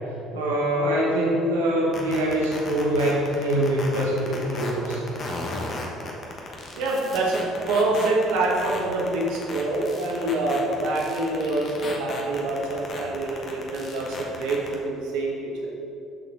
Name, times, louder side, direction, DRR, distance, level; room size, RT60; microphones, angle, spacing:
voice 1, 0.3-5.0, right 1 dB, 85° right, -5 dB, 1.1 m, -24 dB
sound 1, 1.9-14.7, left 3 dB, 50° left, 1.2 m, -35 dB
voice 2, 6.7-15.7, right 2 dB, 70° right, -2 dB, 1.4 m, -26 dB
7.6 x 6.1 x 3.9 m, 2.7 s
hypercardioid pair, 55°, 0 cm